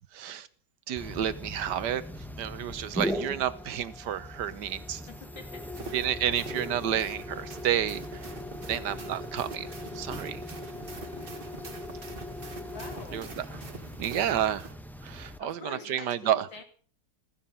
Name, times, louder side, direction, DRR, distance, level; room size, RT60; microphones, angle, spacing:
voice 1, 0.1-0.5 0.9-2.0 2.4-5.1 5.9-8.2 8.7-9.7 9.9-10.4 13.1-13.2 14.0-14.7 15.0-15.6 15.9-16.4, right 10 dB, 70° right, 15 dB, 1.5 m, -30 dB
sound 1, 1.0-15.4, left 1 dB, ahead, 0.6 m, -39 dB
voice 2, 5.1-5.7 11.1-11.5 12.6-13.3 15.4-16.6, left 4 dB, 85° left, 6 dB, 3.3 m, -46 dB
sound 2, 5.6-14.7, right 4 dB, 30° right, 1.7 m, -46 dB
16.0 x 14.5 x 5.6 m, 0.43 s
omnidirectional pair, 2.0 m